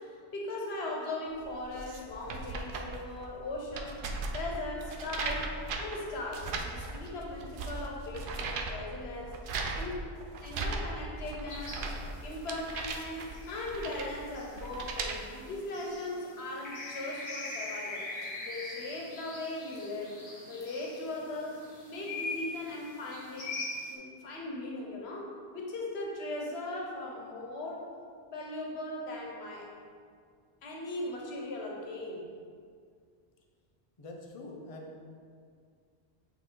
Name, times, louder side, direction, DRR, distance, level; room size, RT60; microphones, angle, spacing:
voice 1, 0.0-4.1 4.3-9.4 9.7-10.0 10.4-11.9 12.2-18.1 18.4-20.2 20.5-23.6 23.9-27.9 28.3-29.7 30.6-32.3, left 2 dB, 75° left, -1 dB, 1.2 m, -39 dB
sound 1, 1.4-15.2, right 3 dB, 60° right, 0.7 m, -38 dB
sound 2, 11.5-23.9, left 2 dB, 60° left, 1.2 m, -43 dB
voice 2, 34.0-35.0, left 1 dB, 40° left, 0 dB, 0.6 m, -45 dB
8.4 x 2.9 x 3.8 m, 2.1 s
omnidirectional pair, 1.1 m